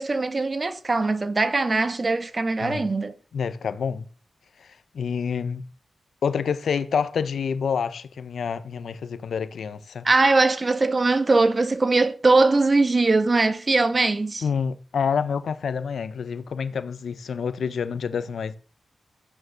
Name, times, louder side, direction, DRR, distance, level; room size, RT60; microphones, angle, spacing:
voice 1, 0.0-3.1 10.0-14.4, right 3 dB, 40° right, 1.7 m, -21 dB
voice 2, 3.3-4.0 4.9-5.6 6.2-10.1 14.4-18.6, left 6 dB, 80° left, 1.2 m, -27 dB
14.0 x 9.4 x 6.2 m
cardioid pair, 60°, 0 cm